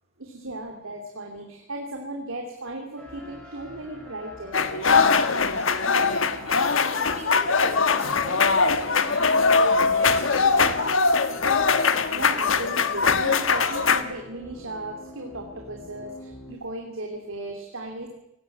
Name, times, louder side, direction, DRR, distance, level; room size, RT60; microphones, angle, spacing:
voice 1, 0.2-5.0 12.1-18.1, right 1 dB, 80° right, 2 dB, 2.9 m, -36 dB
sound 1, 3.0-16.6, equal, 5° left, 5.9 m, -45 dB
sound 2, 4.5-14.0, left 4 dB, 70° left, 1.3 m, -21 dB
voice 2, 5.5-10.8, equal, 30° right, 4 dB, 5.1 m, -41 dB
18.5 x 17.5 x 8.6 m, 0.88 s
head